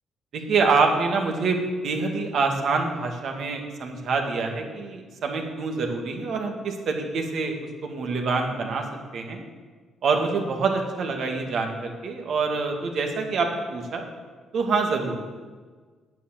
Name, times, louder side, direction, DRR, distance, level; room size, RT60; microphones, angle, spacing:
voice 1, 0.3-7.5 7.8-8.8 9.1-9.4 10.0-14.1 14.5-15.4, right 4 dB, 65° right, 2 dB, 2.1 m, -26 dB
9.2 x 9.1 x 7.5 m, 1.4 s
cardioid pair, 90°, 0 cm